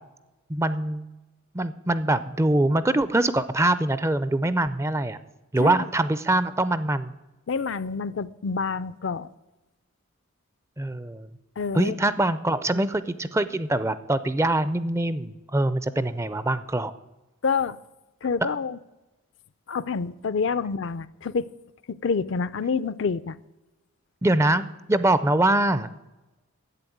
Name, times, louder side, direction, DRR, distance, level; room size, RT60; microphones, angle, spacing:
voice 1, 0.5-1.0 1.5-5.2 5.5-7.1 10.8-11.3 11.7-16.9 24.2-25.9, right 1 dB, 10° right, 15 dB, 0.4 m, -23 dB
voice 2, 7.5-9.3 11.6-12.0 17.4-17.8 18.2-18.8 19.7-21.5 21.9-23.4, left 5 dB, 55° left, 16 dB, 0.4 m, -27 dB
11.0 x 8.4 x 9.3 m, 1.1 s
head